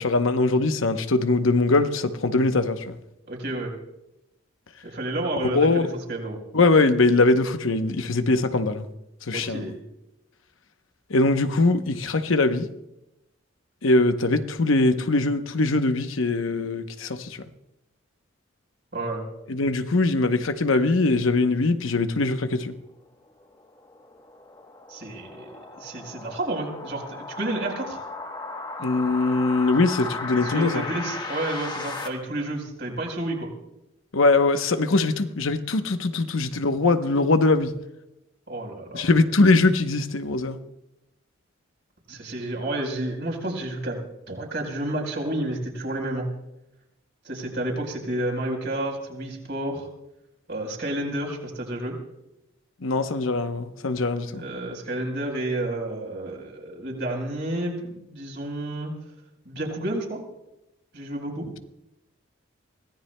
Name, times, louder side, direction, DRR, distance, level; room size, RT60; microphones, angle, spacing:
voice 1, 0.0-3.0 5.4-5.9 6.5-8.9 9.3-9.7 11.1-12.7 13.8-17.4 19.5-22.7 28.8-30.9 34.1-37.7 38.9-40.6 52.8-54.4, left 3 dB, 75° left, 8 dB, 0.8 m, -22 dB
voice 2, 3.3-3.7 4.8-6.4 9.3-9.8 18.9-19.2 24.9-28.0 30.4-33.5 38.5-39.1 42.1-44.0 44.3-46.3 47.2-49.9 50.5-51.9 54.2-58.9 59.4-60.2 60.9-61.5, right 1 dB, 55° right, 0 dB, 4.3 m, -30 dB
sound 1, 23.4-32.1, left 3 dB, 20° left, 1.0 m, -35 dB
24.5 x 17.5 x 2.2 m, 0.92 s
head